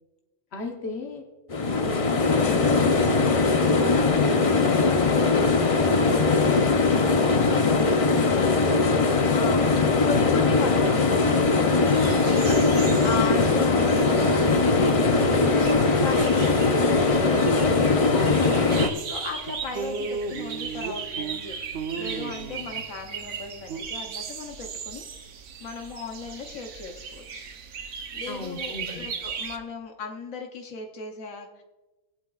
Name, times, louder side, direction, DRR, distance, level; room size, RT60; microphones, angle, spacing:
voice 1, 0.5-1.2 1.6-2.2 2.6-3.2 3.6-7.8 12.3-13.0 18.1-18.9 28.3-29.1, left 3 dB, 55° left, 3 dB, 1.4 m, -36 dB
sound 1, 1.5-18.9, left 3 dB, 40° left, 0.5 m, -21 dB
voice 2, 8.9-11.5 12.5-12.6 13.0-17.5 18.7-21.6 22.0-25.0 25.6-27.5 28.1-31.6, left 4 dB, 80° left, 2 dB, 1.3 m, -36 dB
sound 2, 11.3-23.8, right 5 dB, 65° right, 1.3 m, -36 dB
sound 3, 11.9-29.6, right 6 dB, 85° right, 1.3 m, -38 dB
18.0 x 8.6 x 2.4 m, 1.1 s
omnidirectional pair, 1.4 m